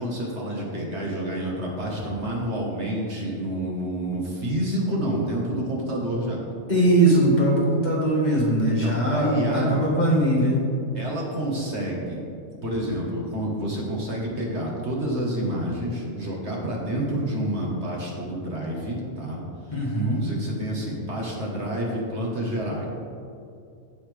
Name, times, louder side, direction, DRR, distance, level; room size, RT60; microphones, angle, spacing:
voice 1, 0.0-6.4 8.7-9.8 10.9-12.2 12.6-19.4 20.0-22.9, right 1 dB, 50° right, -3 dB, 1.8 m, -28 dB
voice 2, 6.7-10.6 19.7-20.2, right 1 dB, 30° left, -5 dB, 1.7 m, -21 dB
15.5 x 5.7 x 3.4 m, 2.6 s
omnidirectional pair, 1.5 m